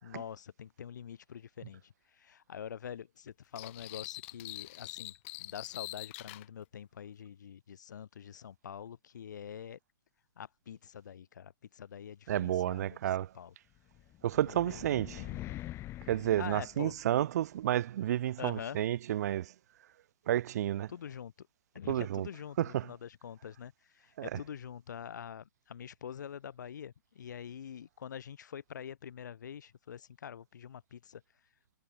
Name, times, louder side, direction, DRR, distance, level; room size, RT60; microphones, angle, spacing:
voice 1, 0.0-5.1 5.4-9.8 10.4-13.5 14.3-15.6 16.4-17.0 18.4-18.8 20.9-21.5 21.7-31.2, left 8 dB, 65° left, 5.5 m, -45 dB
sound 1, 3.6-6.5, left 22 dB, 40° left, 4.5 m, -44 dB
voice 2, 12.3-13.3 14.2-15.3 16.1-19.5 20.3-20.9 21.9-22.3 22.6-22.9 24.2-24.3, right 12 dB, 55° right, 3.5 m, -31 dB
sound 2, 13.9-17.4, left 14 dB, 25° left, 3.1 m, -45 dB
hypercardioid pair, 130°, 10 cm